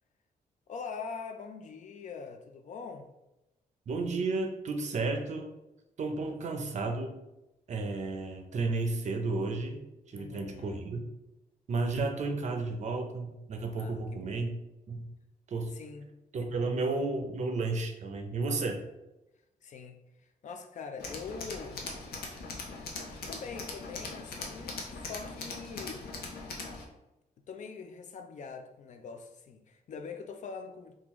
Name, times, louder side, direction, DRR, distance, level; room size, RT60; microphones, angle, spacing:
voice 1, 0.7-3.1 6.2-6.7 10.1-10.8 13.8-14.4 15.7-16.1 19.6-21.8 23.3-26.0 27.5-30.9, left 5 dB, 55° left, 6 dB, 0.4 m, -43 dB
voice 2, 3.9-5.5 6.0-7.1 7.7-11.1 11.7-14.5 14.9-15.1 15.5-15.7 16.3-18.8, right 3 dB, 50° right, 4 dB, 0.5 m, -32 dB
Tools, 21.0-26.8, left 3 dB, 85° left, 0.7 m, -40 dB
3.7 x 2.4 x 3.0 m, 0.94 s
wide cardioid pair, 135°, 15 cm